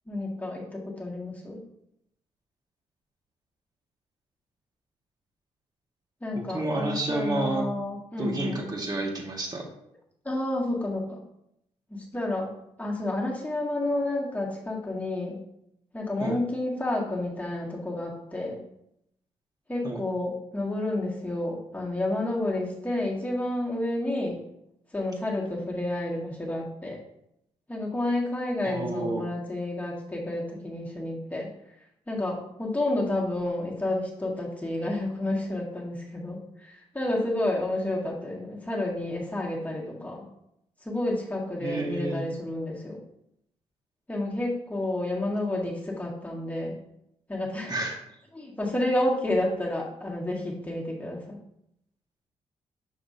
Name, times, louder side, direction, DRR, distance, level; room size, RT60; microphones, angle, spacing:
voice 1, 0.1-1.6 6.2-8.6 10.2-11.2 11.9-12.5 12.8-15.4 15.9-18.6 19.7-24.4 24.9-27.0 27.7-31.5 32.1-40.3 40.8-43.0 44.1-46.8 47.3-47.7 48.3-51.4, left 1 dB, 10° left, -3 dB, 1.8 m, -30 dB
voice 2, 6.3-7.6 8.2-9.6 16.2-16.4 19.8-20.0 28.6-29.3 41.6-42.2 47.7-48.0, right 2 dB, 35° right, 0 dB, 1.6 m, -30 dB
6.2 x 5.8 x 2.7 m, 0.77 s
cardioid pair, 85°, 12 cm